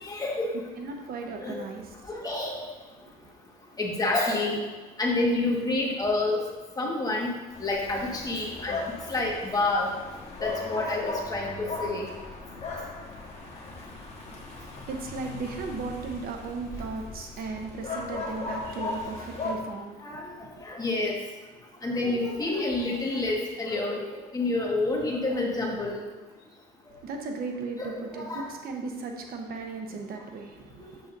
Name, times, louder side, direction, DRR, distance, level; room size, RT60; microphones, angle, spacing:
voice 1, 0.0-0.5 1.4-1.6 2.1-2.7 3.8-4.6 5.0-6.4 6.8-7.3 7.6-8.8 9.1-9.9 10.4-11.5 11.8-12.0 20.0-20.3 20.6-21.1 21.8-26.0 27.8-28.5 30.8-30.9, left 2 dB, 20° left, -1 dB, 1.6 m, -28 dB
voice 2, 0.8-1.9 3.0-3.3 14.2-20.6 26.9-31.0, right 4 dB, 60° right, 3 dB, 1.0 m, -37 dB
sound 1, 7.5-19.5, left 3 dB, 40° left, 1.6 m, -37 dB
7.8 x 7.3 x 2.7 m, 1.2 s
cardioid pair, 110°, 17 cm